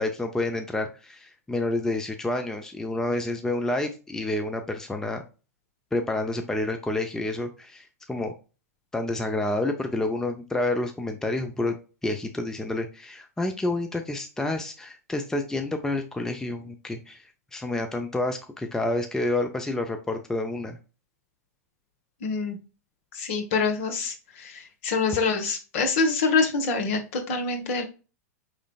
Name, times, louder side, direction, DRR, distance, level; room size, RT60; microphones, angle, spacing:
voice 1, 0.0-5.2 5.9-8.3 8.9-11.8 12.0-17.2 17.5-20.8, left 2 dB, 5° left, 5 dB, 0.5 m, -29 dB
voice 2, 22.2-22.6 23.1-27.8, left 4 dB, 55° left, 5 dB, 1.3 m, -26 dB
5.0 x 3.2 x 2.3 m, 0.33 s
hypercardioid pair, 105°, 9 cm